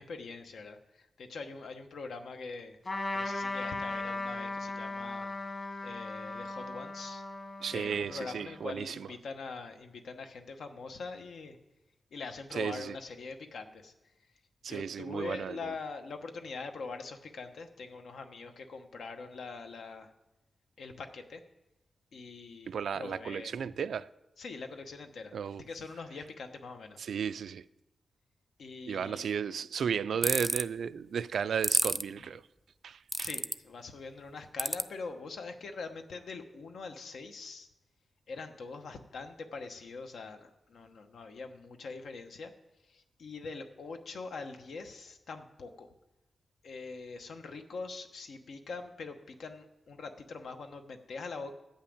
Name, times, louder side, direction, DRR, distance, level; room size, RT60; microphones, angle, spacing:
voice 1, 0.0-2.8 3.1-5.3 5.8-7.2 7.7-11.6 12.1-13.9 14.7-20.1 20.8-21.4 22.1-23.6 24.4-27.0 28.6-29.3 33.2-37.7 38.3-42.5 42.8-45.9 46.6-51.5, left 4 dB, 80° left, 1.0 m, -43 dB
Trumpet, 2.8-8.7, left 2 dB, 35° left, 1.6 m, -38 dB
voice 2, 7.6-9.1 12.5-13.0 14.6-15.7 22.7-24.1 25.3-25.6 27.0-27.6 28.9-32.4 32.8-33.3, right 7 dB, 90° right, 0.3 m, -34 dB
sound 1, 30.2-30.6 31.6-32.0 33.1-33.5 34.6-34.8, right 1 dB, 10° right, 0.3 m, -28 dB
11.5 x 5.7 x 8.6 m
wide cardioid pair, 180°, 0 cm